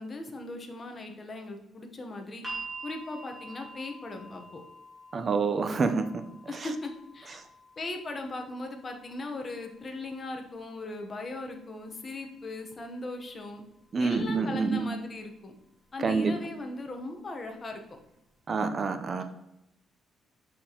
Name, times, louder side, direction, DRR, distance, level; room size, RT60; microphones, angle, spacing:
voice 1, 0.0-2.4 2.8-4.6 6.5-7.4 7.8-13.6 14.0-15.5 15.9-17.8, left 2 dB, 30° left, 4 dB, 1.1 m, -38 dB
sound 1, 2.4-14.5 15.6-15.7, right 2 dB, 5° right, 2.5 m, -48 dB
voice 2, 5.1-6.1 13.9-14.9 16.0-16.3 18.5-19.2, right 4 dB, 40° right, 8 dB, 0.7 m, -27 dB
6.2 x 6.0 x 3.0 m, 0.88 s
cardioid pair, 110°, 0 cm